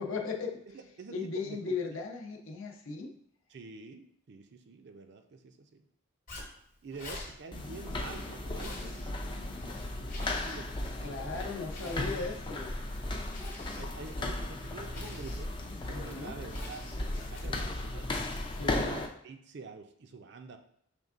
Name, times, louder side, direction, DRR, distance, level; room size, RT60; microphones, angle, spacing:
voice 1, 0.0-0.6 1.1-3.1 11.0-12.7 15.9-16.3 18.5-18.9, left 4 dB, 65° left, 1 dB, 0.7 m, -37 dB
voice 2, 0.7-2.0 3.5-5.9 6.8-9.2 10.0-12.3 13.8-15.5 15.9-18.2 18.7-20.6, right 4 dB, 50° right, 5 dB, 0.4 m, -47 dB
Zipper (clothing), 6.3-17.7, left 2 dB, 35° left, 1.0 m, -49 dB
sound 1, 7.5-19.1, left 1 dB, 20° left, 0.3 m, -36 dB
5.2 x 3.4 x 2.4 m, 0.68 s
head